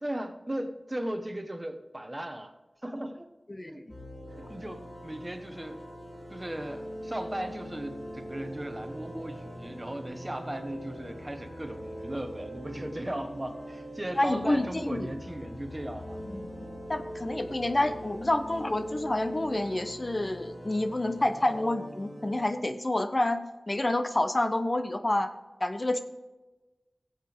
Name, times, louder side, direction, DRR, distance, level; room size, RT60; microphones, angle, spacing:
voice 1, 0.0-2.5 2.8-3.3 3.6-3.8 4.5-5.8 6.3-16.2, right 1 dB, 25° right, 7 dB, 1.2 m, -37 dB
voice 2, 3.5-3.8 14.2-15.1 16.2-16.5 16.9-23.4 23.7-25.3 25.6-26.0, left 1 dB, 35° left, 9 dB, 0.7 m, -28 dB
sound 1, 3.9-22.4, equal, 10° left, 2.9 m, -42 dB
15.0 x 8.1 x 3.5 m, 1.1 s
wide cardioid pair, 55°, 0 cm